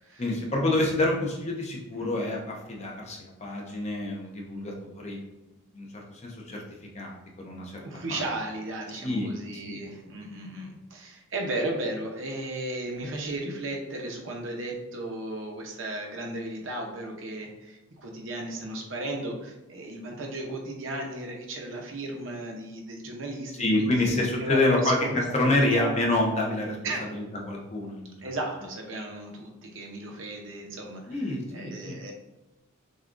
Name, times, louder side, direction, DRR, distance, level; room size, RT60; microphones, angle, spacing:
voice 1, 0.2-5.2 5.7-6.6 6.9-7.8 8.1-8.2 9.0-9.8 23.6-28.2 31.1-32.0, left 2 dB, 30° left, -1 dB, 0.7 m, -27 dB
voice 2, 7.8-24.0 24.4-25.2 25.4-25.9 26.8-27.1 28.2-32.1, right 1 dB, 60° right, 1 dB, 0.8 m, -35 dB
6.3 x 2.4 x 2.5 m, 1.0 s
head